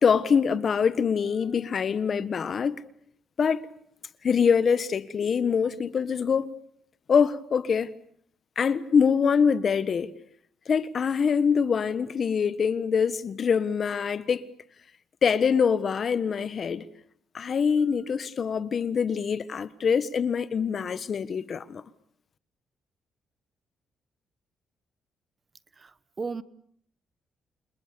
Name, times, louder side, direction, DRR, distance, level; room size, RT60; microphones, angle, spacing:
voice 1, 0.0-2.8 3.4-3.7 4.2-6.5 7.1-7.9 8.5-10.1 10.7-14.5 15.2-16.9 17.3-21.8, left 6 dB, 50° left, 1.4 m, -24 dB
voice 2, 25.8-26.4, right 4 dB, 35° right, 1.2 m, -35 dB
29.5 x 27.5 x 7.0 m
cardioid pair, 90°, 0 cm